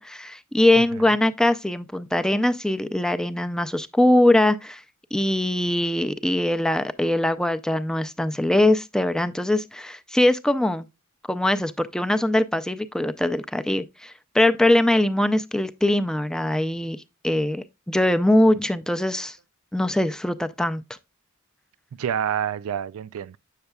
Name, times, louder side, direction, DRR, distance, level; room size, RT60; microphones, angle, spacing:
voice 1, 0.0-4.8 5.1-10.9 11.3-19.4 19.7-20.8, left 1 dB, 5° left, 0.4 m, -22 dB
voice 2, 22.0-23.4, right 8 dB, 90° right, 0.4 m, -28 dB
7.9 x 6.6 x 2.3 m
head